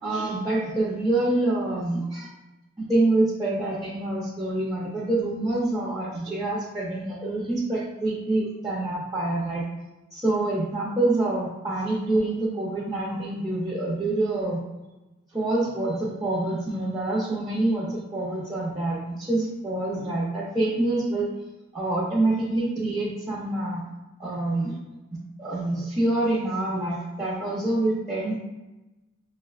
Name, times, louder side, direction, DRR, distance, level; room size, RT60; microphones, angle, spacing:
voice 1, 0.0-2.3 2.9-9.6 10.1-14.6 15.3-21.3 21.7-23.8 24.2-24.8 25.1-28.4, right 2 dB, 20° right, -7 dB, 0.5 m, -26 dB
5.9 x 2.2 x 2.3 m, 1.1 s
head